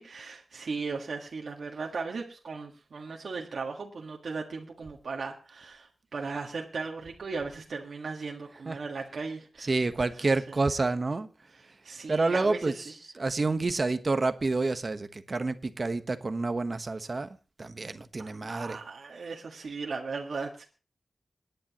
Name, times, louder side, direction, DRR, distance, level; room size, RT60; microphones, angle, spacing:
voice 1, 0.0-10.6 11.5-12.9 18.2-20.6, right 4 dB, 75° right, 0 dB, 1.6 m, -37 dB
voice 2, 9.7-11.3 12.1-12.7 13.2-17.3 17.6-18.8, right 3 dB, 40° right, 10 dB, 1.1 m, -28 dB
27.0 x 10.5 x 3.0 m, 0.34 s
wide cardioid pair, 120°, 0 cm